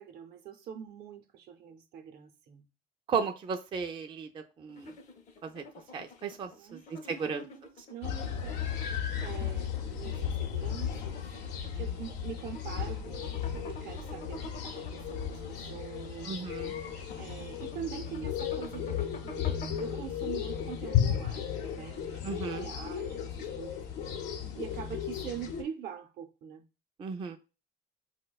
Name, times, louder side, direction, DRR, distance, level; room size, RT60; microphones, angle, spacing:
voice 1, 0.0-2.7 6.5-8.6 9.2-11.2 11.8-16.3 17.2-19.5 19.8-23.8 24.6-26.7, right 8 dB, 75° right, 0.6 m, -44 dB
voice 2, 3.1-4.9 5.4-5.7 5.9-7.4 16.3-16.7 22.2-22.7 27.0-27.4, right 5 dB, 30° right, 0.3 m, -35 dB
sound 1, 4.7-21.5, left 2 dB, 45° left, 0.6 m, -49 dB
sound 2, 8.0-25.6, left 9 dB, 85° left, 0.6 m, -35 dB
4.7 x 2.1 x 2.2 m
cardioid pair, 110°, 17 cm